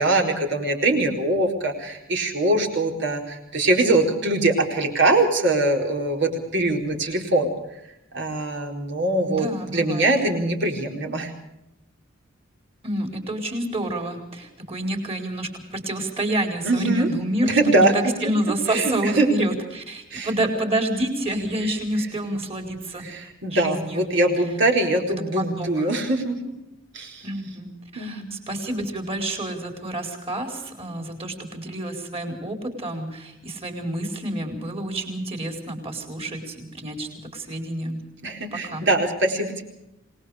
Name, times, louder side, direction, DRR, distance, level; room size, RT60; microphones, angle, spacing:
voice 1, 0.0-7.5 8.1-11.3 16.6-17.1 17.4-17.9 18.7-19.5 20.1-20.5 23.0-26.5 26.9-27.3 27.9-28.3 38.2-39.6, right 2 dB, 60° right, 2 dB, 4.3 m, -22 dB
voice 2, 9.2-10.1 12.8-24.0 25.4-25.9 27.2-38.1 38.5-38.9, right 1 dB, 30° right, 4 dB, 4.7 m, -28 dB
27.5 x 20.0 x 5.0 m, 0.88 s
head